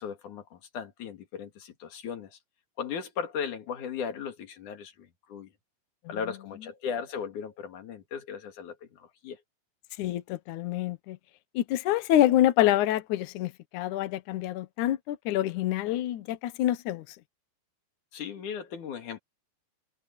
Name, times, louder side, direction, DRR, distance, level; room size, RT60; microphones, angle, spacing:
voice 1, 0.0-2.4 2.8-5.5 6.1-9.4 18.1-19.2, left 7 dB, 50° left, 3.3 m, -37 dB
voice 2, 10.0-11.2 11.5-17.0, left 13 dB, 85° left, 1.7 m, -26 dB
omnidirectional pair, 5.0 m